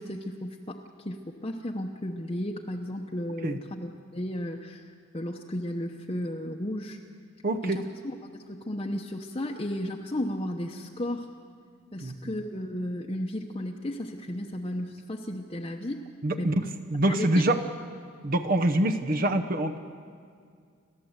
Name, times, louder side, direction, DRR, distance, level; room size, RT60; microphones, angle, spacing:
voice 1, 0.0-4.8 5.1-7.0 7.6-11.3 11.9-16.0 16.4-16.6 17.1-17.4, left 1 dB, 25° left, 1 dB, 0.9 m, -34 dB
voice 2, 7.4-7.8 12.0-12.1 16.2-16.5 16.9-17.6 18.2-19.8, right 1 dB, 45° right, 6 dB, 0.8 m, -25 dB
29.5 x 13.0 x 8.0 m, 2.1 s
head